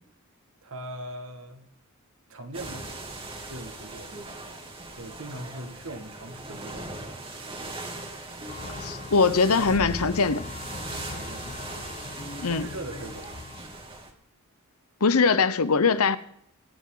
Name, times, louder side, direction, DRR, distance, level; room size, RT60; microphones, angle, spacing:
voice 1, 0.6-1.7 2.3-2.9 3.5-4.3 5.0-7.0 10.9-11.6 12.5-13.4, right 1 dB, 65° right, 2.0 m, -40 dB
sound 1, 2.5-14.1, right 2 dB, 25° right, 2.5 m, -39 dB
sound 2, 8.5-13.6, left 4 dB, 30° left, 0.5 m, -42 dB
voice 2, 8.8-10.4 12.4-12.7 15.0-16.2, left 4 dB, 80° left, 0.9 m, -22 dB
24.5 x 9.4 x 3.9 m
head